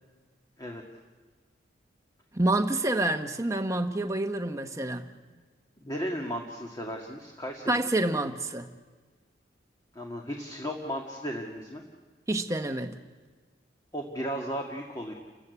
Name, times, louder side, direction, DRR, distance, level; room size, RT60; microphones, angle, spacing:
voice 1, 2.3-5.0 7.7-8.7 12.3-13.0, right 2 dB, 15° right, 6 dB, 1.2 m, -28 dB
voice 2, 5.8-7.7 9.9-11.8 13.9-15.1, equal, 20° left, 1 dB, 1.9 m, -35 dB
30.0 x 14.5 x 8.3 m, 1.4 s
head